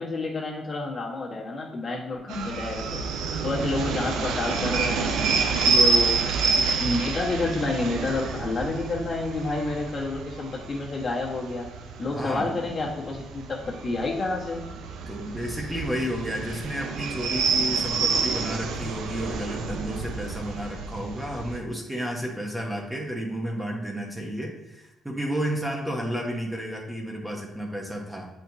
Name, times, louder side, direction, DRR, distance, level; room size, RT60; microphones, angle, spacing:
voice 1, 0.0-3.0 3.4-5.3 5.6-11.7 12.0-14.6, left 2 dB, 45° left, -3 dB, 1.6 m, -29 dB
sound 1, 2.3-21.6, right 4 dB, 85° right, 0.5 m, -28 dB
voice 2, 12.0-12.6 15.1-28.3, equal, 5° right, 0 dB, 1.0 m, -32 dB
7.7 x 4.5 x 2.8 m, 0.93 s
cardioid pair, 90°, 0 cm